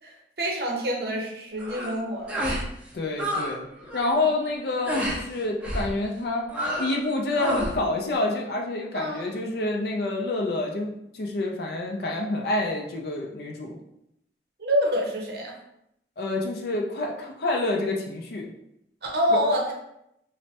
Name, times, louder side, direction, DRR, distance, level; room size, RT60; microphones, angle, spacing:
voice 1, 0.0-2.4 8.9-9.3 14.6-15.6 19.0-19.7, equal, 60° right, 0 dB, 0.6 m, -26 dB
sound 1, 1.6-1.9 2.3-2.7 2.9-3.5 3.8-4.1 4.8-5.2 5.6-5.9 6.5-7.0 7.3-7.8, equal, 5° right, 0.4 m, -29 dB
voice 2, 2.9-3.7 3.9-6.5 6.8-13.8 16.2-18.5 19.3-19.4, left 2 dB, 60° left, 1 dB, 0.4 m, -28 dB
3.1 x 2.0 x 2.8 m, 0.79 s
head